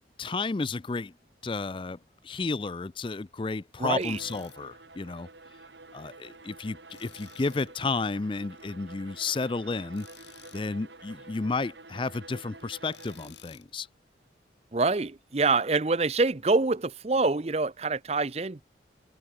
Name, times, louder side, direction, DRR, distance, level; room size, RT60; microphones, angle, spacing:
voice 1, 0.2-1.1 1.4-2.0 2.2-5.3 5.9-10.1 10.5-13.9, left 3 dB, 25° left, 0.4 m, -32 dB
voice 2, 3.8-4.2 14.7-18.6, right 3 dB, 35° right, 0.7 m, -26 dB
Tools, 4.0-4.6 6.9-7.8 9.9-10.7 12.9-13.7, left 7 dB, 75° left, 4.3 m, -52 dB
Bowed string instrument, 4.0-13.5, right 2 dB, 80° right, 6.3 m, -50 dB
head